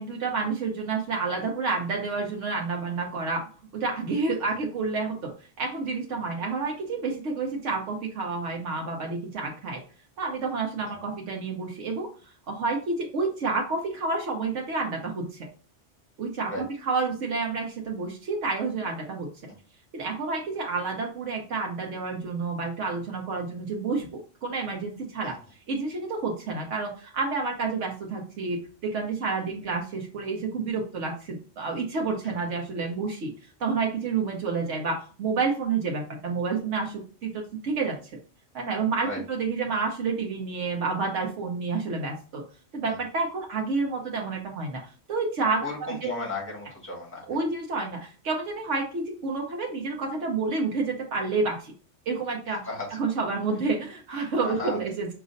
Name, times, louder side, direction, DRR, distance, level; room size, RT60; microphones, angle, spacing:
voice 1, 0.0-3.4 3.7-5.3 5.6-9.8 10.2-12.1 12.5-15.5 16.2-19.3 19.9-25.3 25.7-33.3 33.6-38.0 38.5-42.4 42.7-44.8 45.1-46.1 47.3-51.7 52.1-52.7 53.0-55.1, right 4 dB, 80° right, 0 dB, 1.2 m, -29 dB
voice 2, 45.6-47.4 52.6-53.0 54.4-54.8, left 2 dB, 10° left, -2 dB, 1.5 m, -35 dB
5.0 x 3.0 x 2.5 m, 0.38 s
omnidirectional pair, 1.2 m